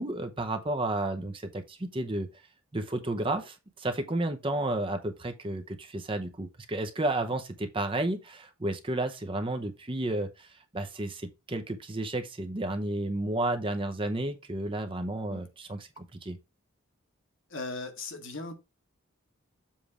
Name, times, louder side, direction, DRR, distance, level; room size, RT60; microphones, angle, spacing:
voice 1, 0.0-2.3 2.7-16.4, right 2 dB, 25° right, 0.7 m, -32 dB
voice 2, 17.5-18.5, left 3 dB, 60° left, 1.4 m, -38 dB
7.3 x 3.3 x 4.8 m
head